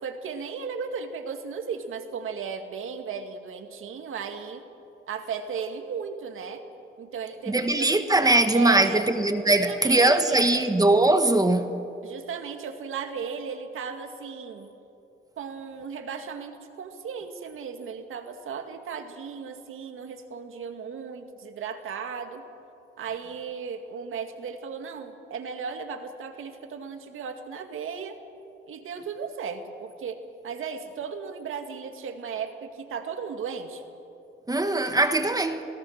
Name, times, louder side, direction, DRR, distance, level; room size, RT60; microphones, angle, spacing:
voice 1, 0.0-4.6 5.1-6.6 7.0-9.0 9.5-10.6 12.0-14.7 15.4-22.4 23.0-28.2 28.7-30.2 30.4-33.8, right 6 dB, 75° right, 6 dB, 2.1 m, -36 dB
voice 2, 7.5-11.7 34.5-35.6, right 2 dB, 15° right, 7 dB, 1.5 m, -21 dB
28.5 x 17.5 x 6.5 m, 2.7 s
cardioid pair, 90°, 21 cm